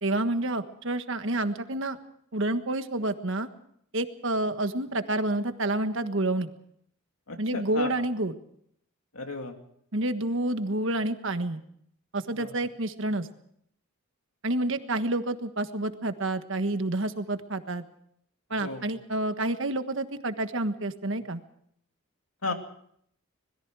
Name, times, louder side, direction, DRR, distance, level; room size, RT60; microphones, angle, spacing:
voice 1, 0.0-2.0 2.3-3.5 3.9-6.5 7.4-8.3 9.9-11.6 12.1-13.3 14.4-17.8 18.5-21.4, right 2 dB, 60° right, 9 dB, 1.5 m, -29 dB
voice 2, 7.3-7.9 9.1-9.5 12.4-12.5 18.6-18.8 22.4-22.5, left 3 dB, 80° left, 5 dB, 2.7 m, -34 dB
26.0 x 21.0 x 4.8 m, 0.68 s
head